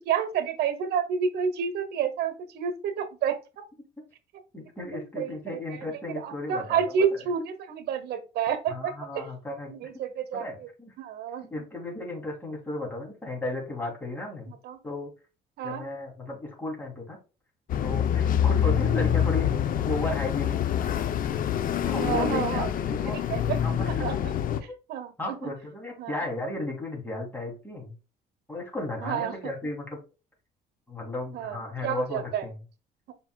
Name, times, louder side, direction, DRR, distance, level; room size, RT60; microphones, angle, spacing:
voice 1, 0.1-3.4 5.2-5.6 6.2-9.3 9.7-10.4 11.0-11.4 14.6-14.8 15.6-15.8 21.9-22.7 23.3-23.6 24.0-24.1 24.9-25.5 26.0-26.2 29.0-29.5 31.3-31.6 31.8-32.4, right 7 dB, 70° right, 10 dB, 1.1 m, -29 dB
voice 2, 4.5-7.2 8.7-9.9 10.3-10.9 11.5-14.5 14.8-15.1 15.6-17.2 17.8-19.5 19.8-20.6 21.8-23.2 23.6-24.1 24.7-24.8 25.2-27.9 28.5-30.0 30.9-32.6, left 2 dB, 10° left, -1 dB, 3.3 m, -34 dB
sound 1, 17.7-24.6, left 9 dB, 55° left, 0.7 m, -26 dB
7.4 x 5.4 x 2.4 m, 0.32 s
cardioid pair, 110°, 17 cm